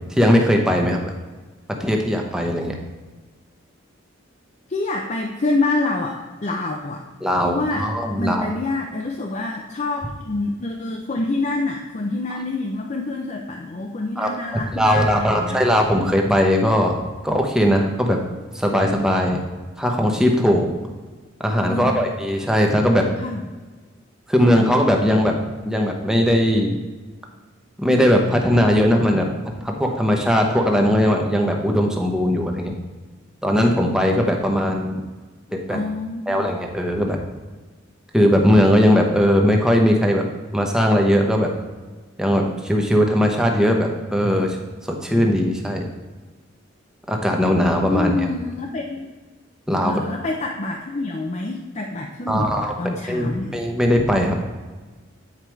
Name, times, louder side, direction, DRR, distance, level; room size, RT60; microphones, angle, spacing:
voice 1, 0.1-1.0 1.8-2.7 7.2-8.5 14.2-18.2 18.5-19.4 19.8-20.7 21.4-23.1 24.3-25.4 25.7-26.8 27.8-29.3 29.6-32.8 33.4-35.0 35.5-35.8 36.3-37.2 38.1-40.2 40.5-41.5 42.2-44.6 44.9-45.9 47.1-48.3 49.7-49.9 52.3-52.7 53.1-54.4, equal, 5° right, 1 dB, 0.9 m, -19 dB
voice 2, 4.7-7.0 7.4-7.9 8.2-15.6 21.7-22.1 23.2-23.4 35.7-36.5 47.9-49.1 49.8-53.6, left 2 dB, 35° left, 1 dB, 0.6 m, -27 dB
8.9 x 4.8 x 4.6 m, 1.3 s
head